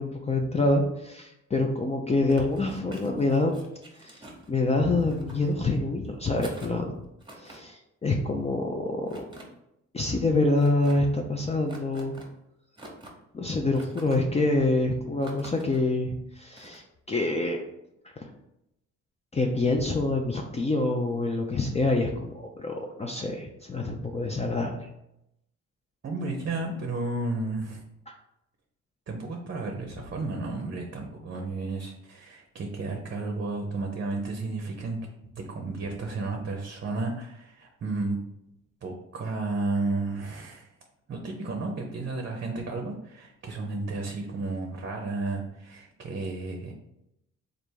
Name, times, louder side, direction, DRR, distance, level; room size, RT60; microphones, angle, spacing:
voice 1, 0.0-3.5 4.0-4.2 4.5-7.0 7.3-9.2 9.9-12.1 13.3-17.6 18.2-18.3 19.3-24.7, left 2 dB, 20° left, 1 dB, 0.5 m, -26 dB
sound 1, 2.3-4.5 5.0-5.8 6.3-6.8 7.2-7.6 9.1-9.4 10.6-11.0 11.7-12.3 12.8-13.2 13.7-14.2 15.2-15.8 16.5-16.8, right 1 dB, 15° right, 1.0 m, -47 dB
voice 2, 26.0-27.8 29.1-35.0 35.4-38.2 38.8-40.7 41.1-46.7, right 3 dB, 40° right, 2 dB, 0.7 m, -32 dB
3.3 x 2.5 x 4.5 m, 0.83 s
cardioid pair, 90°, 30 cm